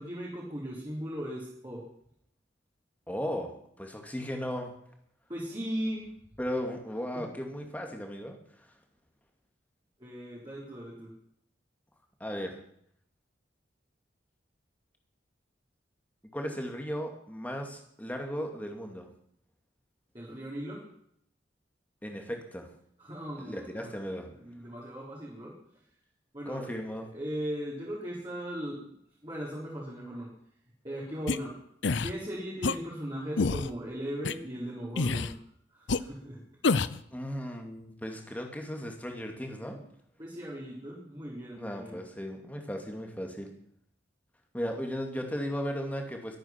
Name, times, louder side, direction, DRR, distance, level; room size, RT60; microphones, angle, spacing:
voice 1, 0.0-1.8 5.3-6.3 7.1-7.4 10.0-11.1 20.1-20.8 23.0-24.0 24.4-25.5 26.3-28.9 29.2-30.3 30.8-31.5 32.0-35.3 35.7-36.4 39.6-39.8 40.2-42.0, equal, 25° right, -5 dB, 4.0 m, -38 dB
voice 2, 3.1-3.5 3.8-4.7 6.4-8.7 12.2-12.6 16.3-19.1 22.0-22.7 23.4-24.3 26.5-27.1 37.1-39.8 41.6-43.5 44.5-46.4, equal, 10° left, 3 dB, 2.4 m, -36 dB
sound 1, 31.3-31.4 31.8-32.1 32.6-32.8 33.4-33.7 34.3-34.4 35.0-35.3 35.9-36.0 36.6-37.0, left 4 dB, 70° left, 0.6 m, -27 dB
22.0 x 9.3 x 6.0 m, 0.70 s
head